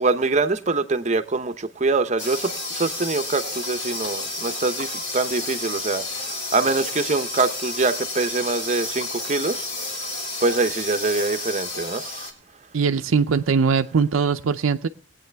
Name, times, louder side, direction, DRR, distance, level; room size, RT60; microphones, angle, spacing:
voice 1, 0.0-10.1 10.4-12.3, right 3 dB, 35° right, 0.8 m, -24 dB
sound 1, 2.2-12.3, left 2 dB, 60° left, 2.6 m, -31 dB
voice 2, 12.7-14.9, right 5 dB, 90° right, 0.5 m, -21 dB
21.5 x 8.9 x 3.4 m
head